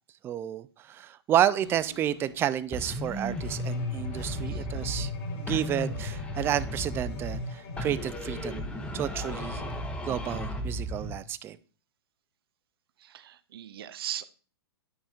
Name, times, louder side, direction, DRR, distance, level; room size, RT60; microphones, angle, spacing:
voice 1, 0.2-5.1 5.3-8.7 8.9-9.6 10.0-11.6, right 11 dB, 15° right, 0.3 m, -30 dB
sound 1, 1.6-2.4 2.8-9.8 10.3-10.4, left 2 dB, 80° left, 3.5 m, -41 dB
sound 2, 2.7-5.2 5.5-7.5 7.8-11.2, equal, 10° left, 0.8 m, -35 dB
Bowed string instrument, 3.4-8.7, left 7 dB, 40° left, 0.9 m, -50 dB
voice 2, 13.0-14.2, right 11 dB, 60° right, 0.6 m, -39 dB
10.0 x 5.5 x 2.3 m
hypercardioid pair, 120°, 14 cm